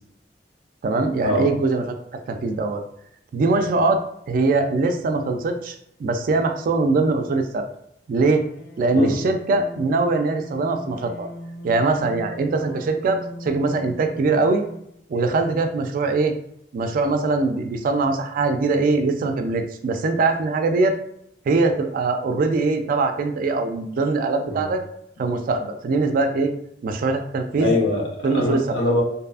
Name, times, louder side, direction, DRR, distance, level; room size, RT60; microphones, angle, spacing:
voice 1, 0.8-2.0 2.3-2.8 3.3-4.0 4.3-7.7 8.1-8.4 8.8-11.3 11.6-14.6 15.1-16.3 16.7-20.9 21.5-24.8 25.2-26.5 26.8-27.7 28.2-28.6, right 3 dB, 50° right, 6 dB, 0.3 m, -22 dB
sound 1, 8.2-15.0, equal, 55° left, 0.5 m, -39 dB
voice 2, 27.6-29.0, left 2 dB, 90° left, -1 dB, 0.8 m, -23 dB
2.6 x 2.4 x 2.3 m, 0.75 s
head